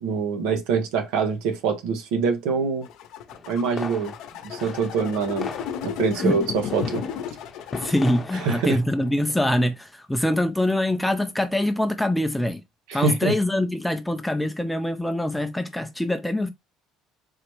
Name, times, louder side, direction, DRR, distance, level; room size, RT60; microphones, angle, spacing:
voice 1, 0.0-2.9 3.5-4.1 4.4-5.5 5.8-7.0 8.4-8.8 12.9-13.3, right 5 dB, 85° right, 1.0 m, -25 dB
sound 1, 2.8-8.1, left 8 dB, 70° left, 0.7 m, -33 dB
sound 2, 3.3-9.7, left 4 dB, 25° left, 0.8 m, -39 dB
voice 2, 7.8-12.6 12.9-16.5, left 1 dB, 5° left, 0.4 m, -24 dB
4.0 x 3.1 x 2.9 m
cardioid pair, 120°, 0 cm